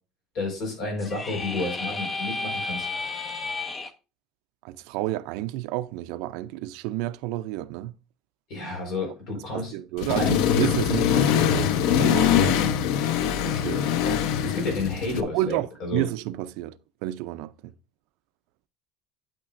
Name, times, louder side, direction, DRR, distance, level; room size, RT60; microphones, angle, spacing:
voice 1, 0.3-2.9 8.5-9.7 10.0-10.4 12.4-13.1 14.0-16.1, left 2 dB, 40° left, 4.4 m, -31 dB
sound 1, 1.0-3.9, left 3 dB, 15° left, 0.6 m, -32 dB
voice 2, 4.6-7.9 9.4-12.5 13.4-13.9 15.3-17.5, right 15 dB, 65° right, 0.4 m, -30 dB
Accelerating revving vroom, 10.0-15.2, left 9 dB, 65° left, 0.6 m, -23 dB
8.8 x 8.8 x 2.5 m
cardioid pair, 175°, 0 cm